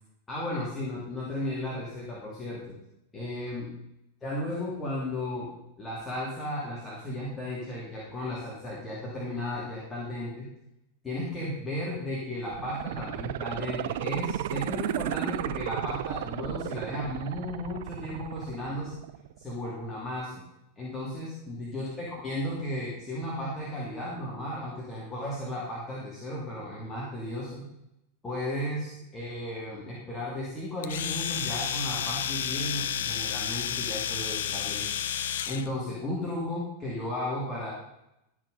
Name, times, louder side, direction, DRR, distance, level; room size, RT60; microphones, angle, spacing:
voice 1, 0.3-2.7 3.1-3.7 4.2-5.5 5.8-10.5 11.0-18.9 19.4-20.3 20.8-27.7 28.2-34.8 35.5-37.7, left 1 dB, 15° left, -5 dB, 2.4 m, -34 dB
sound 1, 12.4-19.4 19.8-19.9, right 13 dB, 55° right, 0.3 m, -34 dB
Domestic sounds home sounds, 30.8-35.7, left 9 dB, 60° left, 0.5 m, -31 dB
12.0 x 6.3 x 5.3 m, 0.85 s
figure-of-eight pair, 90°, 0 cm